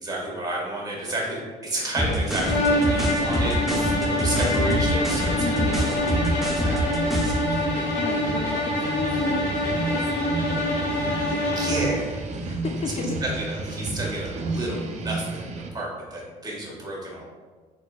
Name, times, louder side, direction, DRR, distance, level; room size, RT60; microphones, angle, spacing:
voice 1, 0.0-6.8 7.2-7.6 11.5-12.1 12.4-12.6 12.9-17.2, right 1 dB, 25° right, -4 dB, 1.5 m, -31 dB
sound 1, 2.0-7.4, equal, ahead, 0.7 m, -26 dB
sound 2, 2.0-15.7, right 3 dB, 40° right, 0.5 m, -32 dB
sound 3, 2.4-12.0, left 1 dB, 75° left, 1.1 m, -26 dB
voice 2, 5.4-5.8 8.0-9.4 9.9-11.1 12.5-13.2, left 5 dB, 40° left, 3 dB, 0.4 m, -33 dB
4.4 x 4.3 x 2.3 m, 1.4 s
cardioid pair, 110°, 17 cm